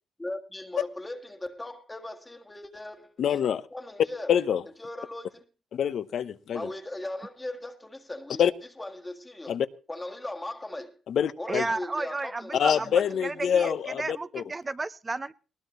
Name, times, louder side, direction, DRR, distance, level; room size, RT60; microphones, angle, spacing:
voice 1, 0.2-4.3 4.8-5.4 6.5-8.4 8.8-9.6 9.9-11.0 11.4-13.2 13.6-13.8, left 1 dB, 15° left, 1.7 m, -39 dB
voice 2, 3.2-3.6 4.3-4.6 5.7-6.7 8.4-8.5 9.5-9.7 11.1-11.7 12.5-14.4, left 8 dB, 65° left, 1.0 m, -25 dB
voice 3, 11.5-12.9 13.2-15.3, right 3 dB, 25° right, 0.8 m, -33 dB
19.5 x 19.0 x 3.1 m
cardioid pair, 90°, 0 cm